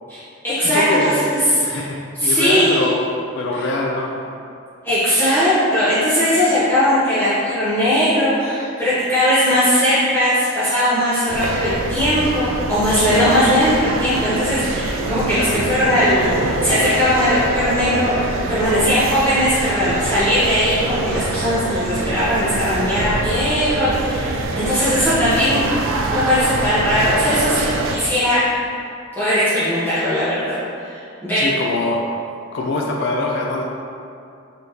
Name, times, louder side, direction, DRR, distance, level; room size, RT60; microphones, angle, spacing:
voice 1, 0.1-1.4 1.7-1.8 2.2-2.9 3.5-3.6 4.8-18.1 18.5-25.6 26.0-28.4 29.2-31.4, equal, 10° left, -14 dB, 0.8 m, -19 dB
voice 2, 0.7-1.2 1.6-3.0 3.4-4.3 31.4-32.1 32.5-33.6, left 2 dB, 60° left, -1 dB, 0.3 m, -23 dB
sound 1, 11.3-28.0, right 2 dB, 80° right, 0.4 m, -24 dB
3.8 x 3.4 x 2.8 m, 2.6 s
head